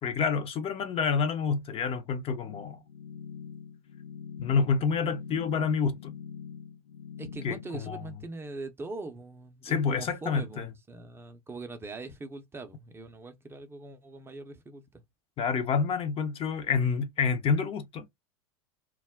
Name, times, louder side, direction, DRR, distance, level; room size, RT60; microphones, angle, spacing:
voice 1, 0.0-2.8 4.4-6.1 7.4-8.0 9.6-10.7 15.4-18.1, left 5 dB, 30° left, 0.6 m, -28 dB
sound 1, 2.5-7.7, left 7 dB, 90° left, 0.7 m, -44 dB
voice 2, 7.2-15.0, right 3 dB, 15° right, 0.6 m, -42 dB
2.3 x 2.0 x 3.4 m
hypercardioid pair, 95°, 18 cm